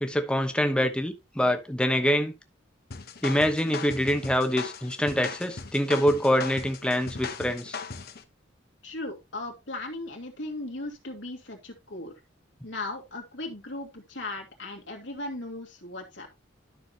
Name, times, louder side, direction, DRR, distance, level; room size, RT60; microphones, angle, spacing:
voice 1, 0.0-2.3 3.2-7.8, equal, 5° left, 1.1 m, -25 dB
sound 1, 2.9-8.2, left 5 dB, 55° left, 1.0 m, -38 dB
voice 2, 8.8-12.1 12.6-16.3, left 2 dB, 75° left, 2.4 m, -37 dB
12.0 x 6.2 x 2.9 m
head